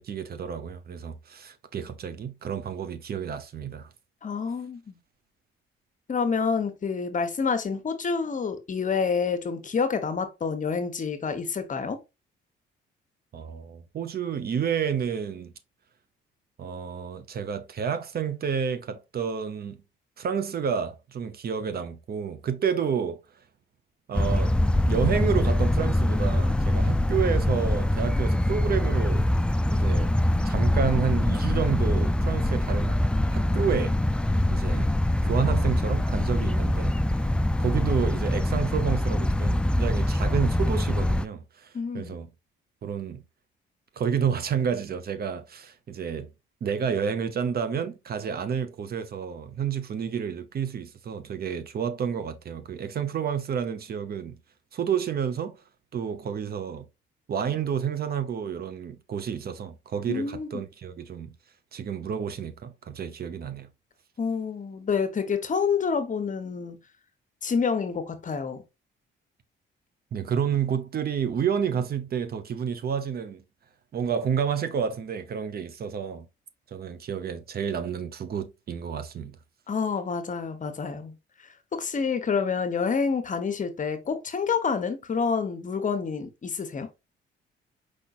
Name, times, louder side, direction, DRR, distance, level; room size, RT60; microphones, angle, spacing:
voice 1, 0.0-3.9 13.3-15.5 16.6-19.8 20.2-23.2 24.1-24.5 24.9-29.3 29.7-30.1 30.4-33.0 33.3-34.0 34.5-34.9 35.2-37.0 37.6-42.3 42.8-43.2 44.0-46.3 46.6-54.4 54.7-55.6 55.9-56.9 57.3-61.3 61.7-63.7 70.1-73.4 73.9-76.3 76.7-79.4, right 7 dB, 50° right, 0.8 m, -30 dB
voice 2, 4.2-5.0 6.1-12.0 41.7-42.2 60.1-60.6 64.2-66.8 67.4-68.6 79.7-81.1 81.7-86.9, left 5 dB, 40° left, 1.0 m, -28 dB
sound 1, 24.1-41.3, left 1 dB, 5° left, 0.3 m, -24 dB
4.9 x 4.2 x 2.5 m
cardioid pair, 90°, 20 cm